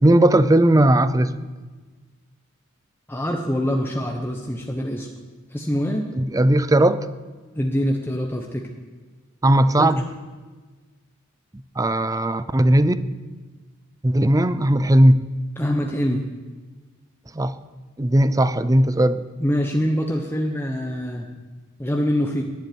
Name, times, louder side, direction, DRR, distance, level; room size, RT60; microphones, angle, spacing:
voice 1, 0.0-1.5 6.1-7.1 9.4-10.0 11.8-13.0 14.0-15.4 17.3-17.6 18.0-19.2, right 1 dB, 15° right, 14 dB, 0.6 m, -17 dB
voice 2, 3.1-5.1 5.5-6.1 7.5-8.7 9.8-9.9 15.6-16.2 19.4-21.3 21.8-22.4, equal, 10° left, 1 dB, 1.1 m, -24 dB
11.0 x 11.0 x 9.4 m, 1.4 s
head